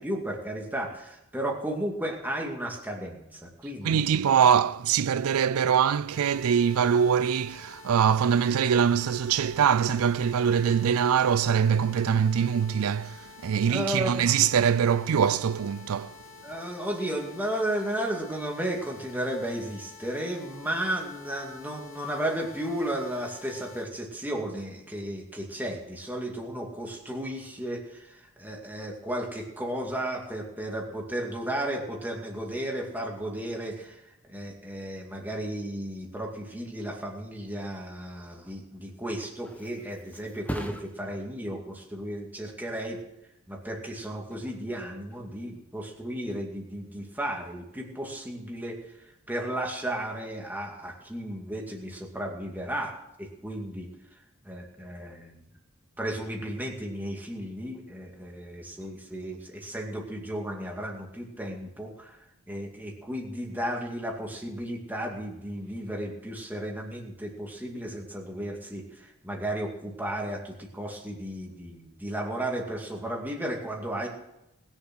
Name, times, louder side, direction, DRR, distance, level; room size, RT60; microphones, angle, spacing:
voice 1, 0.0-4.1 13.7-14.1 16.4-34.0 34.3-43.0 43.5-48.8 49.3-52.9 53.2-53.9 54.4-55.4 56.0-62.2 62.5-74.1, right 1 dB, 10° right, 2.3 m, -34 dB
voice 2, 3.8-16.2, right 7 dB, 80° right, 0.4 m, -23 dB
sound 1, 6.1-23.9, left 7 dB, 55° left, 3.2 m, -49 dB
Thump thud, 38.9-46.4 46.8-47.2, equal, 5° left, 1.1 m, -44 dB
20.0 x 7.3 x 6.2 m
head